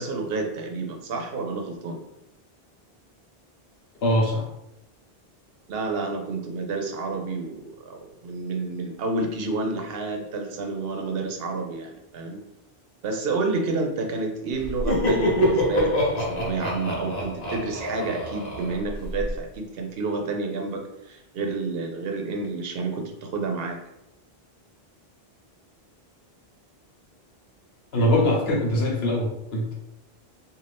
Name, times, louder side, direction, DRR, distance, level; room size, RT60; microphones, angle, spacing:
voice 1, 0.0-2.0 5.7-12.4 13.0-23.8, right 3 dB, 70° right, 3 dB, 0.8 m, -30 dB
voice 2, 4.0-4.4 27.9-29.7, left 1 dB, 80° left, -3 dB, 1.1 m, -22 dB
Laughter, 14.6-19.3, left 1 dB, 60° left, 1.0 m, -25 dB
2.5 x 2.4 x 3.3 m, 0.85 s
omnidirectional pair, 1.0 m